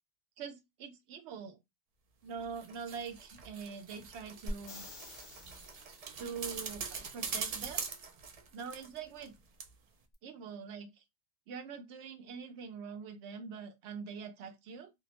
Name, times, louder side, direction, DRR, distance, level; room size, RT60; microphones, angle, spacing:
voice 1, 0.4-1.6 2.2-4.9 6.2-7.9 8.5-9.3 10.2-11.0 11.5-14.9, right 6 dB, 85° right, 0.9 m, -44 dB
sound 1, 2.3-9.3 9.6-9.7, right 5 dB, 60° right, 0.4 m, -43 dB
sound 2, 4.5-6.3 10.1-10.2, equal, 50° left, 0.8 m, -45 dB
2.6 x 2.0 x 2.8 m
omnidirectional pair, 1.1 m